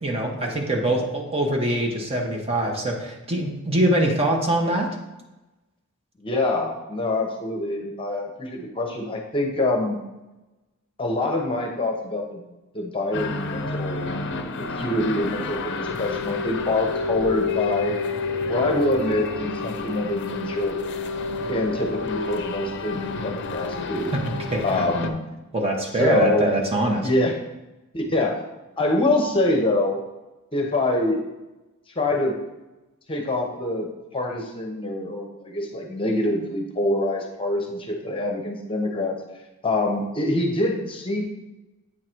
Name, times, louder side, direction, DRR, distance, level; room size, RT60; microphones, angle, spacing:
voice 1, 0.0-4.9 24.1-24.2 24.5-24.9 25.5-27.1, right 1 dB, 25° right, 1 dB, 0.9 m, -23 dB
voice 2, 6.2-10.1 11.0-12.4 12.7-14.1 14.7-18.0 18.5-20.8 21.5-24.1 24.6-25.2 26.0-26.5 27.0-27.3 27.9-28.4 28.8-30.0 30.5-31.2 32.0-32.4 33.1-39.2 39.6-41.2, left 2 dB, 25° left, 2 dB, 0.9 m, -25 dB
sound 1, 13.1-25.1, left 4 dB, 55° left, 0.6 m, -29 dB
8.7 x 3.8 x 4.5 m, 1.0 s
head